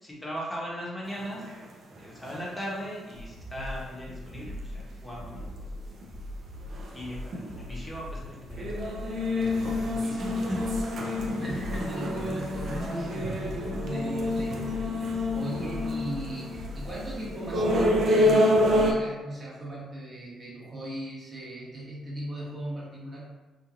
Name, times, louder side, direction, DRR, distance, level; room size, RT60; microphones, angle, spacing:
voice 1, 0.0-1.5 2.0-5.7 6.9-8.9 9.3-10.6 14.4-15.3, equal, 15° left, -5 dB, 0.9 m, -39 dB
sound 1, 1.2-2.0 2.3-2.4 2.8-2.9 3.3-3.4 3.6-3.7 4.1-4.2 4.8-4.9 5.2-5.5 6.0-6.1 6.7-7.1 7.3-7.8 8.2-8.3 8.6-18.9, left 1 dB, 60° right, 0.5 m, -27 dB
sound 2, 3.1-19.0, left 1 dB, 70° left, 0.4 m, -41 dB
voice 2, 11.4-23.3, right 1 dB, 35° right, -6 dB, 1.1 m, -38 dB
3.0 x 2.5 x 2.4 m, 1.2 s
cardioid pair, 90°, 0 cm